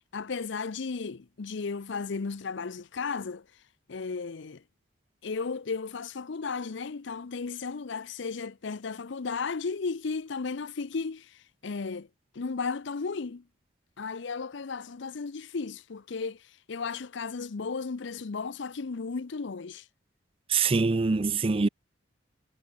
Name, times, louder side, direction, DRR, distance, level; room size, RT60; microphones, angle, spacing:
voice 1, 0.1-3.4 3.9-4.6 5.2-12.1 12.3-13.4 14.0-19.9, left 4 dB, 65° left, 0.6 m, -34 dB
voice 2, 20.5-21.7, right 4 dB, 30° right, 0.5 m, -24 dB
head